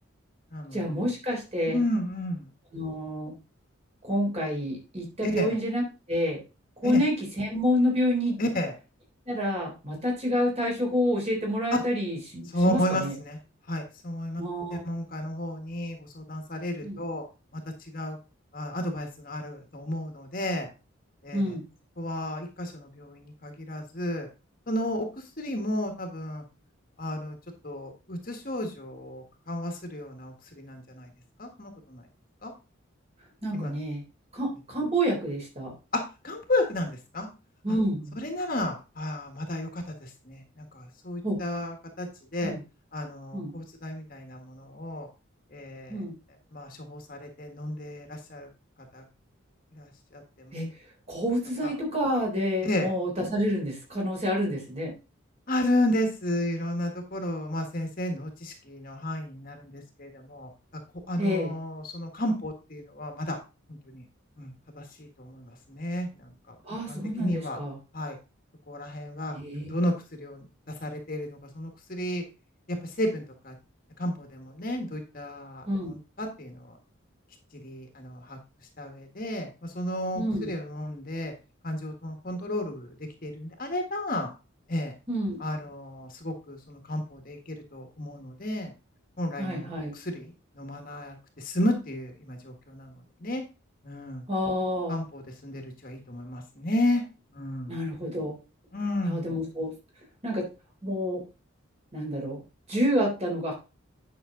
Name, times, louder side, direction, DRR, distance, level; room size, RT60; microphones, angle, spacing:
voice 1, 0.7-1.8 2.7-3.3 4.0-6.4 6.8-8.4 9.3-13.2 14.4-14.8 16.8-17.0 21.3-21.6 33.4-34.0 34.3-35.7 37.6-38.2 41.2-41.4 42.4-42.6 43.3-43.5 45.9-46.1 50.5-50.7 51.1-54.9 61.2-61.6 66.6-67.8 69.3-69.7 75.7-76.0 80.1-80.5 85.1-85.4 89.4-89.9 94.3-95.0 97.7-98.4 99.0-99.7 100.2-100.5 100.8-101.2 101.9-102.4 102.7-103.5, equal, 30° right, 0 dB, 3.7 m, -28 dB
voice 2, 1.7-2.4 5.2-5.5 6.8-7.0 8.4-8.7 11.7-11.8 12.5-13.4 13.7-14.4 14.8-17.2 17.9-18.2 18.5-20.7 21.2-21.4 22.0-24.3 24.7-25.1 25.4-26.4 27.0-27.3 27.6-31.1 31.4-32.0 32.4-32.5 33.5-33.7 35.9-37.3 38.2-39.7 40.3-41.7 42.0-42.1 42.3-42.5 42.9-45.1 45.5-45.9 46.5-48.5 48.9-49.0 49.8-49.9 52.6-52.9 55.5-60.5 61.1-63.4 63.9-64.0 64.4-64.5 65.0-66.1 66.9-67.6 67.9-68.2 68.7-69.3 69.7-69.9 70.2-70.4 70.8-72.2 72.7-73.5 74.0-75.6 76.2-76.5 77.6-78.4 78.8-79.5 79.7-81.3 81.6-82.9 83.2-84.3 84.7-84.9 85.4-88.7 89.2-89.7 90.0-90.3 90.6-91.1 91.4-92.9 93.2-93.4 93.8-94.2 94.9-97.0 97.3-97.8 98.7-99.2, left 1 dB, 45° left, 4 dB, 1.6 m, -32 dB
9.5 x 6.1 x 3.8 m, 0.30 s
head